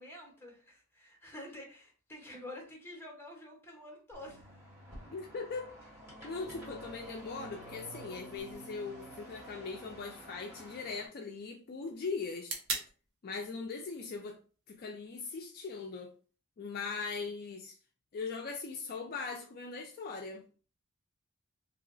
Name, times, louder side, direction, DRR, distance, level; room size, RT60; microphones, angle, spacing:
voice 1, 0.0-4.5, left 1 dB, 10° left, 0.9 m, -48 dB
sound 1, 4.1-11.1, equal, 10° right, 1.1 m, -50 dB
voice 2, 5.1-5.7 6.2-12.6 13.2-14.4 14.7-16.1 16.6-17.8 18.1-20.4, left 4 dB, 45° left, 0.4 m, -40 dB
sound 2, 8.4-16.4, right 4 dB, 60° right, 0.9 m, -47 dB
2.7 x 2.0 x 3.8 m
head